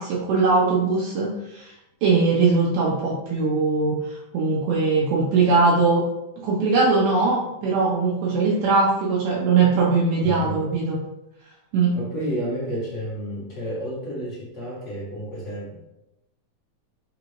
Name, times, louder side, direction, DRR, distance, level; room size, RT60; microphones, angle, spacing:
voice 1, 0.0-1.7 2.0-6.0 6.4-11.0 11.7-11.9, right 4 dB, 90° right, -4 dB, 2.2 m, -21 dB
voice 2, 10.2-10.6 11.9-15.9, equal, 45° left, -7 dB, 0.9 m, -31 dB
5.3 x 2.5 x 3.1 m, 0.89 s
omnidirectional pair, 3.5 m